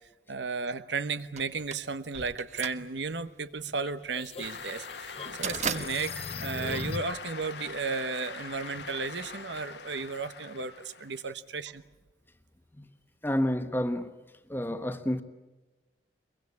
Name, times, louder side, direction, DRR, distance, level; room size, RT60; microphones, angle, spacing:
voice 1, 0.3-11.8, right 4 dB, 80° right, 1.1 m, -34 dB
sound 1, 1.4-7.5, right 6 dB, 40° right, 1.1 m, -38 dB
sound 2, 3.8-7.3, left 4 dB, 35° left, 0.8 m, -39 dB
Cheering / Applause, 4.4-11.3, left 5 dB, 70° left, 1.5 m, -43 dB
voice 2, 13.2-14.1 14.5-15.2, left 1 dB, 10° left, 1.2 m, -29 dB
23.0 x 23.0 x 8.4 m
head